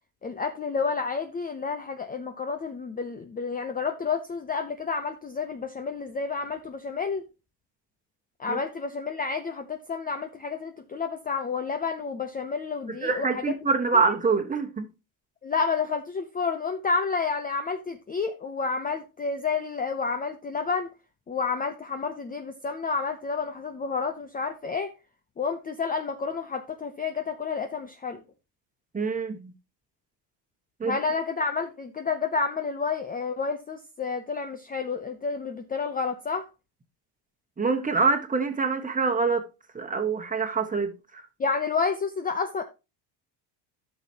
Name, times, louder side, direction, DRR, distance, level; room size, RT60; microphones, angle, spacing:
voice 1, 0.2-7.2 8.4-13.5 13.9-14.0 15.4-20.9 21.3-24.9 25.4-28.2 30.8-36.5 41.4-42.6, left 5 dB, 20° left, 0.6 m, -30 dB
voice 2, 12.9-14.9 28.9-29.5 30.8-31.0 37.6-39.5 39.7-41.2, right 4 dB, 15° right, 1.3 m, -25 dB
12.5 x 6.0 x 2.8 m
supercardioid pair, 110°, 49 cm